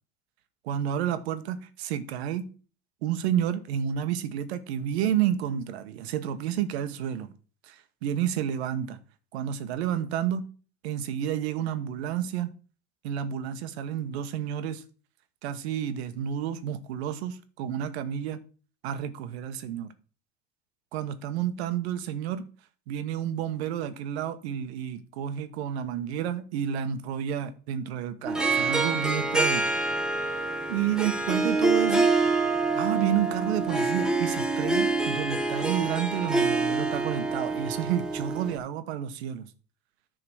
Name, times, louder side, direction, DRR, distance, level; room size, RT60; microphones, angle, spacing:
voice 1, 0.6-2.5 3.0-7.3 7.6-9.0 9.3-10.4 10.8-12.5 13.0-14.8 15.4-18.4 18.8-19.9 20.9-22.4 22.9-29.7 30.7-32.1 32.7-39.5, right 10 dB, 85° right, 1.2 m, -30 dB
Harp, 28.3-38.6, right 3 dB, ahead, 1.2 m, -26 dB
10.0 x 3.9 x 6.3 m
supercardioid pair, 110°, 31 cm